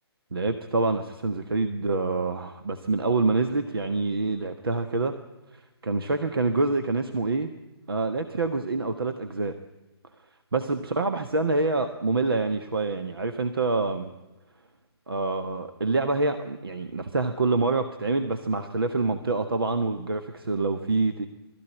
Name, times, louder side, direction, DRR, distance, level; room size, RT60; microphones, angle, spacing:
voice 1, 0.3-5.2 5.5-7.5 7.9-9.5 10.5-14.1 15.1-21.3, right 3 dB, 60° right, 7 dB, 1.3 m, -26 dB
21.0 x 14.0 x 9.8 m, 1.1 s
figure-of-eight pair, 140°, 14 cm